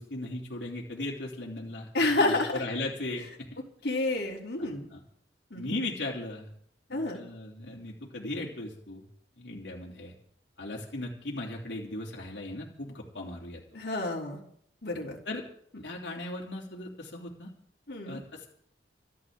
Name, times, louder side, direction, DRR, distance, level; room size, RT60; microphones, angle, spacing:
voice 1, 0.0-3.5 4.6-5.0 5.5-6.5 6.9-9.1 9.4-10.1 10.6-13.6 15.2-15.4 15.8-17.5 18.1-18.5, left 2 dB, 85° left, -2 dB, 3.1 m, -37 dB
voice 2, 1.9-2.6 3.8-4.9 5.5-5.8 6.9-7.2 13.7-14.4 14.8-15.2 17.9-18.2, left 2 dB, 65° left, -3 dB, 3.4 m, -29 dB
27.0 x 11.5 x 3.8 m, 0.64 s
head